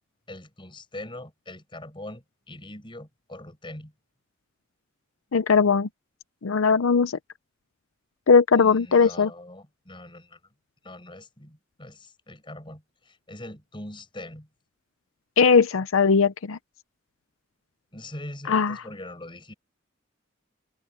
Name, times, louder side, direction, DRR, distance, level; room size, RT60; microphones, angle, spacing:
voice 1, 0.3-3.9 8.6-10.4 10.8-14.5 17.9-19.5, left 1 dB, 25° left, 5.2 m, -42 dB
voice 2, 5.3-5.9 6.4-7.2 8.3-9.3 15.4-16.6 18.5-18.8, left 5 dB, 85° left, 0.6 m, -19 dB
head